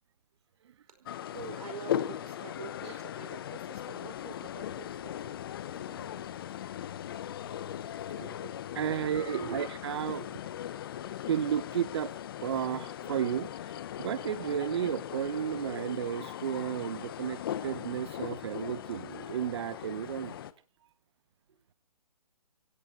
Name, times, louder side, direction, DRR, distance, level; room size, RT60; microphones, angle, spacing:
sound 1, 1.1-20.5, left 10 dB, 35° left, 0.9 m, -39 dB
voice 1, 1.3-5.4 7.9-8.6 9.2-9.6 9.9-10.4, right 5 dB, 65° right, 10 dB, 4.9 m, -45 dB
voice 2, 5.9-6.2 8.8-10.2 11.3-20.3, right 9 dB, 40° right, 16 dB, 0.8 m, -33 dB
26.5 x 17.0 x 2.8 m, 0.36 s
hypercardioid pair, 155°, 20 cm